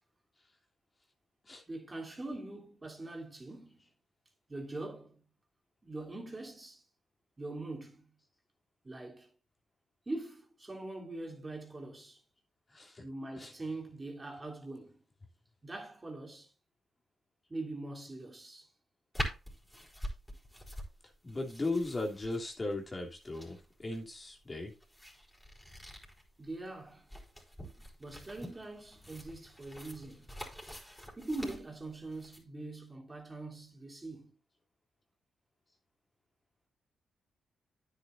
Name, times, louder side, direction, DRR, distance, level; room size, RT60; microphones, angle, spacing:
voice 1, 1.6-3.8 4.5-5.2 5.8-6.8 7.4-8.1 8.8-9.3 10.0-12.2 13.0-15.0 15.6-16.5 17.5-18.7 26.4-27.1 28.0-30.3 31.2-34.3, right 2 dB, 30° right, 3.2 m, -43 dB
sound 1, 19.1-32.4, equal, 10° left, 4.7 m, -45 dB
voice 2, 21.2-24.7, left 2 dB, 30° left, 3.0 m, -37 dB
9.8 x 9.4 x 2.6 m
hypercardioid pair, 45°, 0 cm